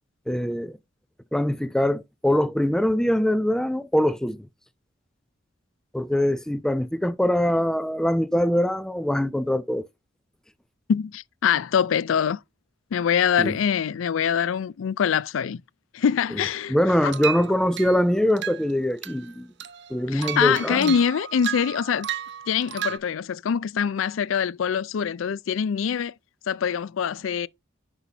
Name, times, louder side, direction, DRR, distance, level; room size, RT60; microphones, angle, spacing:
voice 1, 0.3-0.8 1.3-4.5 5.9-9.9 13.4-13.5 16.3-16.4 16.7-19.5 19.9-20.9, left 1 dB, 5° left, 0.4 m, -23 dB
voice 2, 10.9-12.4 12.9-15.6 15.9-16.8 17.0-17.1 20.1-22.1 22.5-26.1 26.5-27.5, left 7 dB, 80° left, 0.4 m, -24 dB
sound 1, 17.0-18.0 18.4-18.7 19.0-19.3 19.6-23.0, right 10 dB, 60° right, 0.7 m, -33 dB
10.0 x 5.6 x 2.8 m
head